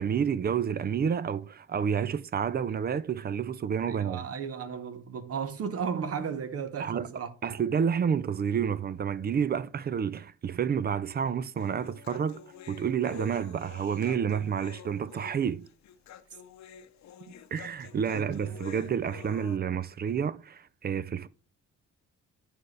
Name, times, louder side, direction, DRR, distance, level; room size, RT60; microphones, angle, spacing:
voice 1, 0.0-4.3 6.8-7.1 7.4-12.4 12.7-15.7 17.5-21.3, right 7 dB, 35° right, 0.4 m, -29 dB
voice 2, 3.9-7.3 18.1-18.4, right 6 dB, 50° right, 1.0 m, -34 dB
Human voice, 11.6-19.6, left 8 dB, 65° left, 0.8 m, -48 dB
9.4 x 4.4 x 3.2 m
cardioid pair, 90°, 30 cm